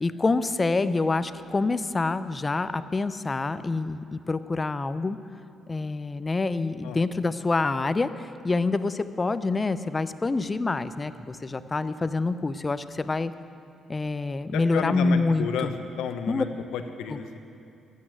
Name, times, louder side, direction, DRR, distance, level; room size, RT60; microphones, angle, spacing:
voice 1, 0.0-5.2 5.7-13.3 13.9-15.7 16.3-16.4 17.1-17.2, left 3 dB, 25° left, 13 dB, 0.5 m, -26 dB
voice 2, 14.5-15.7 16.0-16.5 16.7-17.4, left 7 dB, 85° left, 7 dB, 1.0 m, -31 dB
12.5 x 8.4 x 9.0 m, 2.6 s
cardioid pair, 90°, 0 cm